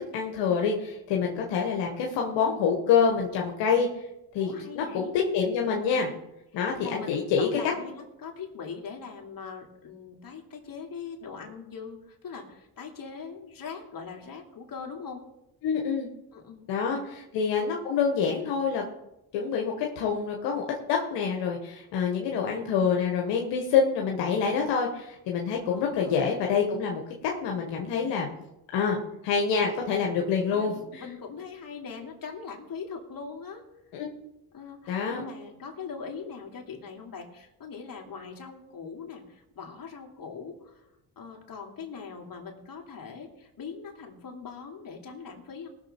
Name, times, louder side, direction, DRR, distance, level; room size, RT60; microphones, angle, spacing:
voice 1, 0.1-3.9 4.3-5.1 5.3-6.1 6.5-7.7 15.6-16.1 16.7-17.0 17.3-18.8 19.3-28.3 28.7-29.0 29.2-31.0 33.9-34.1 34.9-35.2, left 6 dB, 85° left, 0 dB, 1.5 m, -26 dB
voice 2, 4.4-5.1 6.5-15.3 16.3-17.1 25.7-26.2 30.5-33.6 34.5-40.9 41.2-45.7, left 5 dB, 55° left, 1 dB, 2.9 m, -41 dB
19.0 x 6.7 x 4.5 m, 0.90 s
supercardioid pair, 60°, 42 cm